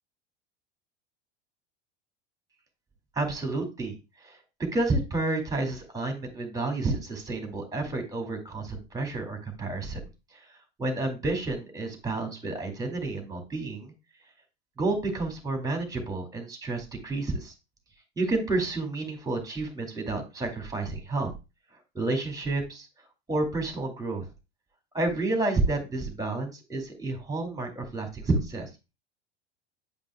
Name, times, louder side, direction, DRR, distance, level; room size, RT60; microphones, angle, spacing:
voice 1, 3.2-4.4 4.7-10.0 10.8-13.9 14.8-17.5 18.2-21.3 21.9-22.9 23.3-24.2 24.9-28.7, right 2 dB, 10° right, 4 dB, 2.3 m, -30 dB
9.0 x 5.1 x 2.3 m, 0.27 s
hypercardioid pair, 80°, 32 cm